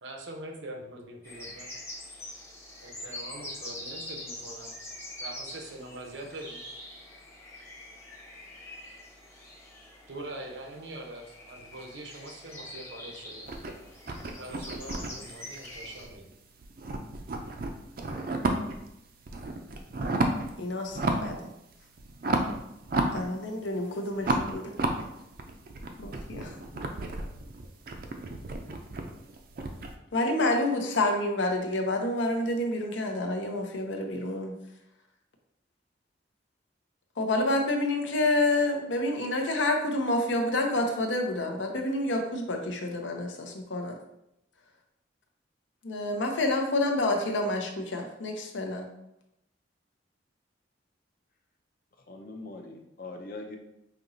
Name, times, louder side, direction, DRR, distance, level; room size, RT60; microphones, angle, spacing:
voice 1, 0.0-1.7 2.8-4.8 5.2-6.6 10.1-13.4 14.4-16.3, right 1 dB, 75° right, 2 dB, 0.8 m, -43 dB
sound 1, 1.2-16.1, left 1 dB, 15° left, 0.8 m, -44 dB
sound 2, 13.4-16.3 16.6-18.9 19.2-20.5 20.9-21.4 21.7-23.7 24.2-29.9, right 2 dB, 50° right, 0.4 m, -32 dB
voice 2, 20.6-21.4 23.1-24.7 26.0-26.5 30.1-34.5 37.2-44.0 45.8-48.9, left 2 dB, 85° left, 3 dB, 0.7 m, -28 dB
voice 3, 52.1-53.6, left 2 dB, 50° left, 3 dB, 0.5 m, -41 dB
5.2 x 2.8 x 2.6 m, 0.84 s
head